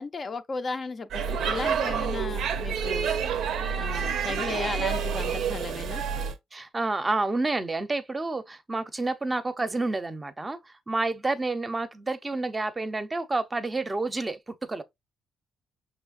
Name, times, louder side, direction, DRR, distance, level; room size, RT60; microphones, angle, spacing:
voice 1, 0.0-3.1 3.8-6.0, left 4 dB, 40° left, 0.4 m, -35 dB
Speech / Shout / Subway metro underground, 1.1-6.4, right 6 dB, 75° right, 0.5 m, -28 dB
voice 2, 6.5-14.8, right 2 dB, 20° right, 0.6 m, -29 dB
5.5 x 3.1 x 2.4 m
cardioid pair, 90°, 0 cm